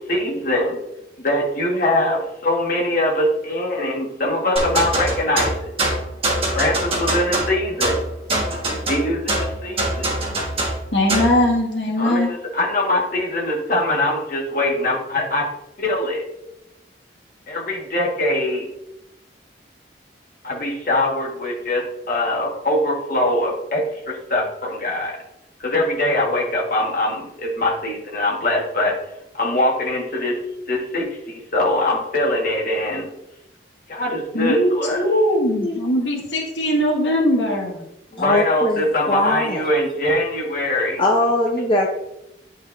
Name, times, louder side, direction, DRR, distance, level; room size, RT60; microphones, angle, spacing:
voice 1, 0.1-0.8 1.2-5.7 6.5-8.0 8.9-10.1 12.0-15.4 15.8-16.2 17.5-18.6 20.4-25.2 25.6-28.9 29.4-30.3 30.7-33.1 33.9-35.0 38.1-41.0, left 1 dB, 45° left, -2 dB, 1.6 m, -22 dB
sound 1, 4.6-11.4, right 1 dB, 30° right, 1.5 m, -23 dB
voice 2, 10.9-12.3 34.3-37.8, left 1 dB, 90° left, -2 dB, 1.9 m, -20 dB
voice 3, 38.2-39.6 41.0-41.9, left 1 dB, 25° left, -1 dB, 0.7 m, -21 dB
9.3 x 5.2 x 2.6 m, 0.87 s
head